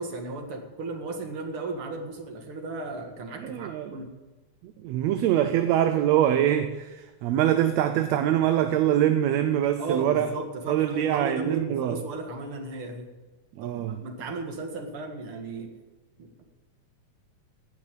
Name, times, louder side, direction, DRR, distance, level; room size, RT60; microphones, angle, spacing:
voice 1, 0.0-4.1 9.8-13.1 13.6-15.7 16.2-16.4, right 3 dB, 50° right, 2.5 m, -35 dB
voice 2, 3.4-3.9 4.6-10.3 10.7-12.0 13.6-14.0, right 11 dB, 75° right, 1.8 m, -24 dB
17.5 x 6.0 x 9.0 m
omnidirectional pair, 3.4 m